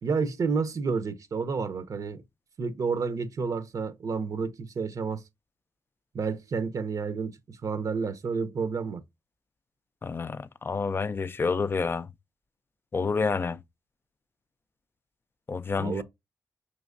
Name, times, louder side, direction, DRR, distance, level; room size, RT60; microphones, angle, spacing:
voice 1, 0.0-2.2 2.6-5.2 6.1-9.0 15.8-16.0, right 5 dB, 55° right, 0.6 m, -30 dB
voice 2, 10.0-12.1 12.9-13.6 15.5-16.0, left 5 dB, 35° left, 0.3 m, -29 dB
5.2 x 3.0 x 2.5 m
cardioid pair, 70°, 7 cm